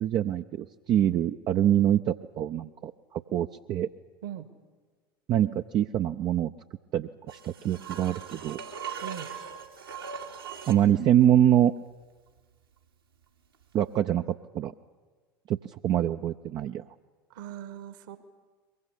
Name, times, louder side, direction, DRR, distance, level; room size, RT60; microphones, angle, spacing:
voice 1, 0.0-3.9 5.3-6.5 6.9-8.6 10.7-11.7 13.7-14.7 15.5-15.6 15.8-16.9, right 11 dB, 35° right, 6 dB, 0.6 m, -25 dB
sound 1, 7.3-10.9 13.8-13.9, right 7 dB, 80° right, 3.0 m, -40 dB
voice 2, 17.3-18.2, right 11 dB, 60° right, 11 dB, 1.8 m, -39 dB
23.0 x 22.0 x 8.3 m, 1.4 s
figure-of-eight pair, 75°, 12 cm